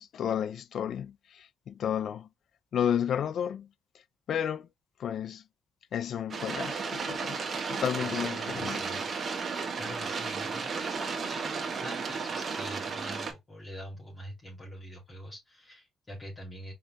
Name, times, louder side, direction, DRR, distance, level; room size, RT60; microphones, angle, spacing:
voice 1, 0.0-2.3 2.7-3.7 4.3-4.7 5.0-5.4 5.9-8.8, left 9 dB, 65° left, 0.5 m, -32 dB
sound 1, 6.3-13.3, right 5 dB, 45° right, 1.6 m, -34 dB
voice 2, 8.0-9.1 9.7-16.7, equal, 30° left, 3.0 m, -45 dB
5.5 x 3.9 x 2.3 m
cardioid pair, 90°, 0 cm